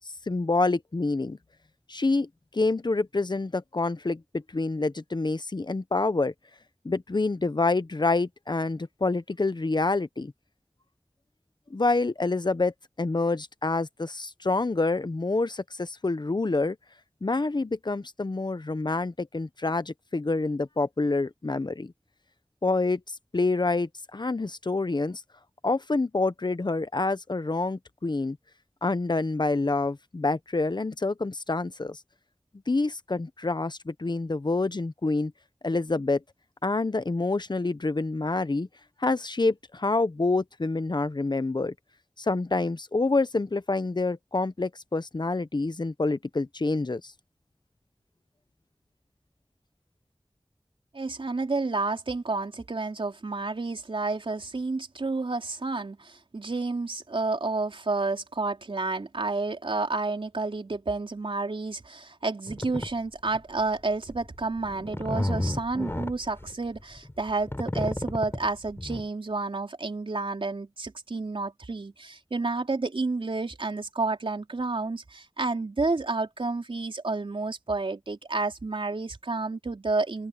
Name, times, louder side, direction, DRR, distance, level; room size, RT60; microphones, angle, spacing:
voice 1, 0.3-1.4 1.9-2.3 2.5-4.2 4.5-6.3 6.8-10.3 11.7-12.7 13.0-16.8 17.2-21.9 22.6-23.0 23.3-25.2 25.6-28.4 28.8-32.0 32.7-35.3 35.6-36.2 36.6-38.7 39.0-41.7 42.2-47.0, left 3 dB, 55° left, 1.0 m, -27 dB
voice 2, 50.9-80.3, right 3 dB, 90° right, 4.1 m, -30 dB
sound 1, 62.5-62.9 63.3-63.6 64.1-69.0, left 1 dB, 25° left, 5.7 m, -32 dB
open air
wide cardioid pair, 55°, 9 cm